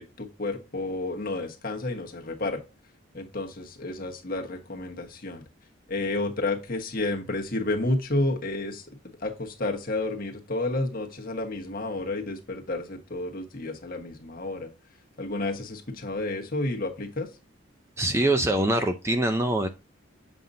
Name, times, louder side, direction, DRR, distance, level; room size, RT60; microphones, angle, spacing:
voice 1, 0.0-2.6 3.1-5.5 5.9-8.9 9.2-14.7 15.2-17.3, left 2 dB, 45° left, 3 dB, 1.3 m, -31 dB
voice 2, 18.0-19.7, right 1 dB, 15° right, 7 dB, 0.5 m, -24 dB
7.6 x 5.3 x 2.7 m, 0.28 s
head